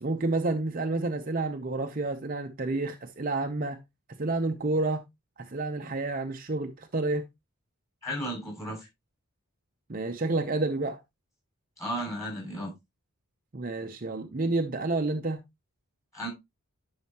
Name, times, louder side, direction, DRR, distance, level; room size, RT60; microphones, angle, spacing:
voice 1, 0.0-3.8 4.2-5.0 5.4-7.2 9.9-11.0 13.5-15.4, right 2 dB, 40° right, 0.6 m, -29 dB
voice 2, 8.0-8.9 11.8-12.7 16.1-16.3, equal, 15° left, 6.2 m, -34 dB
10.5 x 5.6 x 2.8 m
head